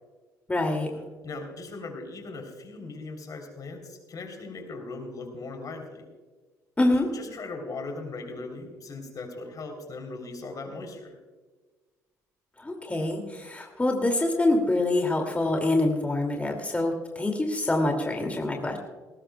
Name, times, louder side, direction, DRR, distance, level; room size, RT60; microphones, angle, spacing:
voice 1, 0.5-0.9 6.8-7.1 12.6-18.8, left 2 dB, 15° left, 2 dB, 2.4 m, -25 dB
voice 2, 1.2-6.1 7.0-11.1, left 3 dB, 50° left, 4 dB, 3.5 m, -39 dB
19.5 x 17.5 x 2.3 m, 1.3 s
hypercardioid pair, 55°, 8 cm